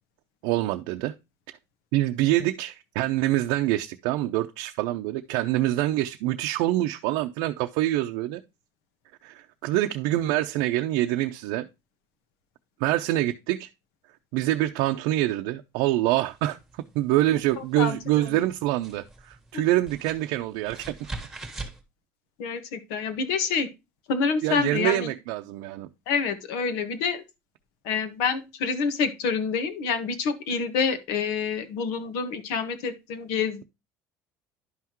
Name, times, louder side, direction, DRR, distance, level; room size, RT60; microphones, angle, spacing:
voice 1, 0.4-1.1 1.9-8.4 9.2-11.7 12.8-13.7 14.3-16.6 16.9-21.1 24.4-25.9, right 15 dB, 90° right, 0.6 m, -25 dB
sound 1, 16.3-21.8, right 2 dB, 5° right, 1.6 m, -43 dB
voice 2, 17.8-18.4 19.5-19.6 22.4-23.7 24.1-25.1 26.1-27.2 27.8-33.6, left 5 dB, 85° left, 1.5 m, -27 dB
11.0 x 5.8 x 3.0 m
cardioid pair, 145°, 7 cm